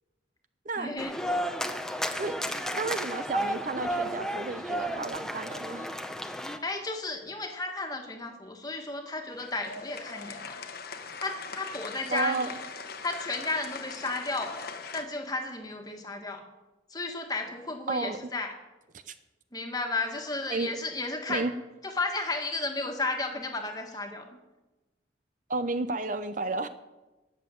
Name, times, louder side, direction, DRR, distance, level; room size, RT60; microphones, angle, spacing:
voice 1, 0.8-1.1 6.4-10.6 11.2-12.4 13.0-16.4 16.9-18.5 19.5-21.5 21.8-24.3, left 3 dB, 20° left, 3 dB, 1.6 m, -33 dB
sound 1, 1.0-6.6, equal, 5° left, 0.7 m, -32 dB
voice 2, 2.7-5.9 12.1-12.5 17.9-18.2 18.9-19.1 20.5-20.7 21.3-21.5 25.5-26.7, right 3 dB, 40° right, 11 dB, 0.6 m, -32 dB
sound 2, 9.3-15.0, left 5 dB, 50° left, 1.1 m, -41 dB
19.0 x 7.1 x 7.6 m, 1.1 s
head